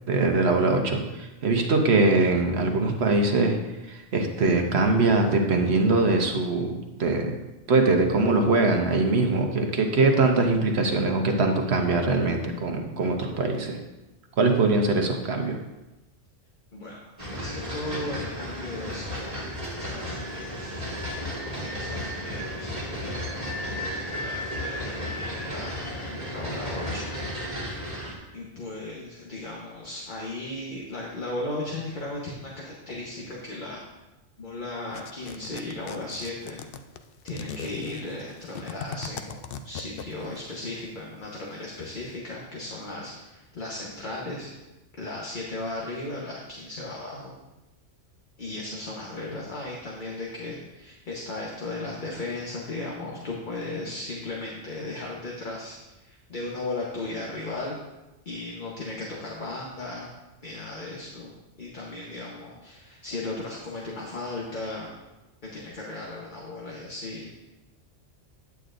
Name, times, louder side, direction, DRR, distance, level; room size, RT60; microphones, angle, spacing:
voice 1, 0.1-3.6 3.8-7.4 7.7-13.8 14.4-15.6, right 3 dB, 65° right, 3 dB, 1.1 m, -22 dB
voice 2, 16.7-19.4 19.9-20.7 21.3-23.5 24.2-27.1 28.3-33.8 34.4-36.6 37.2-39.4 39.6-44.5 45.0-47.3 48.4-55.8 56.0-57.8 58.2-60.1 60.4-64.9 65.4-67.4, left 2 dB, 45° left, -3 dB, 1.2 m, -36 dB
sound 1, 17.2-28.2, equal, 25° right, 1.7 m, -33 dB
sound 2, 34.9-40.4, left 7 dB, 60° left, 0.6 m, -38 dB
9.3 x 8.4 x 2.5 m, 1.0 s
omnidirectional pair, 1.2 m